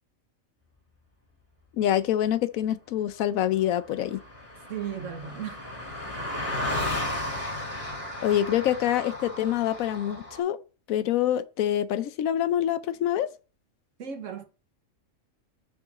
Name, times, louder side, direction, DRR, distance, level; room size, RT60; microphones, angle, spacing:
voice 1, 1.8-4.2 8.2-10.6 10.9-13.3, left 11 dB, 85° left, 1.1 m, -26 dB
Car passing by, 3.3-3.4 3.6-10.4, left 1 dB, 25° left, 3.3 m, -34 dB
voice 2, 4.7-5.6 14.0-14.4, right 8 dB, 65° right, 1.5 m, -35 dB
6.5 x 5.9 x 4.1 m
omnidirectional pair, 1.4 m